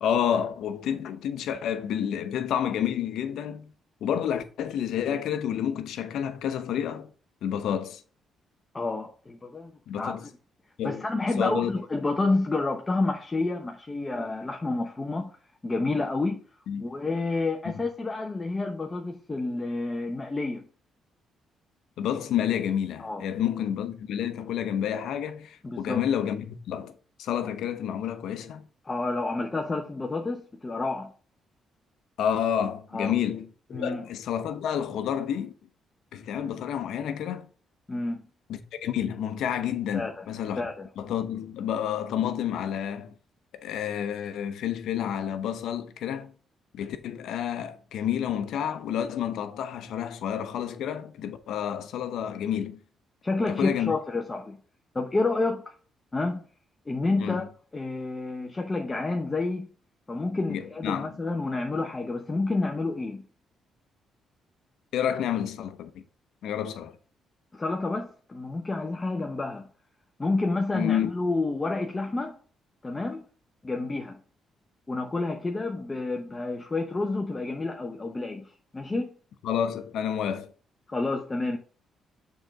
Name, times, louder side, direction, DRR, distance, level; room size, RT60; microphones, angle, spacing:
voice 1, 0.0-3.7 4.0-7.1 7.4-8.0 9.9-10.2 10.8-11.0 11.4-11.7 16.7-16.8 22.0-26.9 27.2-28.6 32.2-35.5 36.1-37.5 38.5-40.6 41.0-43.1 43.6-46.3 46.7-52.8 53.5-53.9 57.2-57.5 60.5-61.1 64.9-66.0 66.4-67.0 70.7-71.1 79.4-80.5, left 9 dB, 80° left, 0.8 m, -29 dB
voice 2, 8.7-10.2 10.8-15.4 15.6-16.4 16.8-20.6 23.0-23.3 25.6-26.0 28.8-31.1 32.9-33.1 33.7-34.0 37.9-38.2 39.9-40.2 40.6-40.9 53.2-54.6 54.9-55.7 56.1-56.4 56.9-57.5 57.7-59.7 60.1-63.2 67.5-69.7 70.2-72.4 72.8-73.2 73.6-74.2 74.9-79.1 80.9-81.6, left 3 dB, 25° left, 0.9 m, -29 dB
6.9 x 3.9 x 5.2 m
cardioid pair, 90°, 0 cm